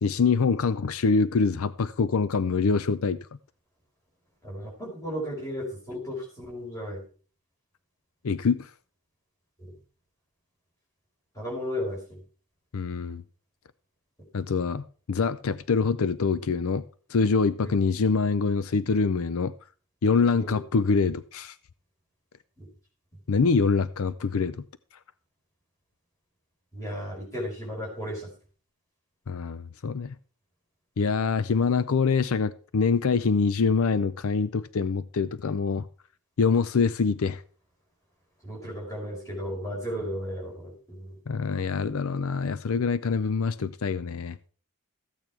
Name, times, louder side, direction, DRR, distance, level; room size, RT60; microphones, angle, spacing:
voice 1, 0.0-3.2 8.2-8.7 12.7-13.2 14.3-16.8 17.1-19.5 20.0-21.6 23.3-24.6 29.3-30.2 31.0-35.9 36.4-37.4 41.3-44.4, left 5 dB, 75° left, 0.5 m, -25 dB
voice 2, 4.4-7.0 11.4-12.2 20.4-20.6 22.6-22.7 26.7-28.3 38.4-41.1, equal, 15° left, 5.3 m, -34 dB
14.0 x 8.9 x 4.5 m
head